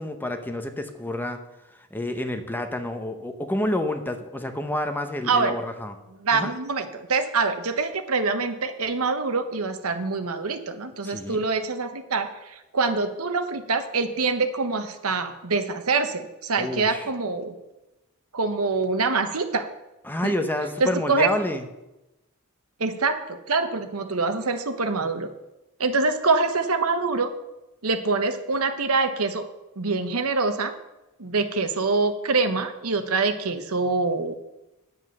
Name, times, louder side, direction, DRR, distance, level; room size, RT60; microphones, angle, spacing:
voice 1, 0.0-1.4 1.9-5.9 6.3-6.5 11.0-11.4 16.6-17.1 20.0-21.6, left 1 dB, 10° left, 6 dB, 0.9 m, -29 dB
voice 2, 5.3-5.6 6.2-17.5 18.3-19.7 20.2-20.4 20.8-21.3 22.8-25.3 25.8-27.3 27.8-29.4 29.8-30.7 31.2-34.3, right 4 dB, 75° right, 8 dB, 1.1 m, -25 dB
9.6 x 7.9 x 6.6 m, 0.97 s
head